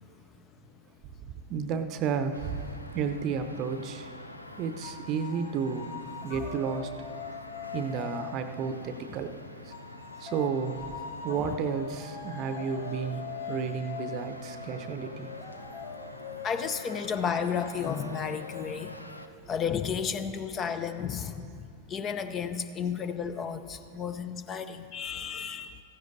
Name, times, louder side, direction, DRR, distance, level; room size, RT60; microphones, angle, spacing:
voice 1, 1.5-2.6 2.9-4.1 4.6-5.9 6.2-7.1 7.7-9.3 9.6-9.7 10.2-10.8 11.2-15.3, right 6 dB, 35° right, 9 dB, 0.7 m, -32 dB
sound 1, 2.3-19.3, left 1 dB, 85° left, 0.5 m, -46 dB
sound 2, 4.8-9.2 9.7-21.1, left 5 dB, 55° left, 3.7 m, -43 dB
voice 2, 16.4-18.9 19.5-25.8, left 7 dB, 25° left, 11 dB, 0.5 m, -33 dB
15.5 x 15.0 x 2.7 m, 2.3 s
figure-of-eight pair, 90°, 0 cm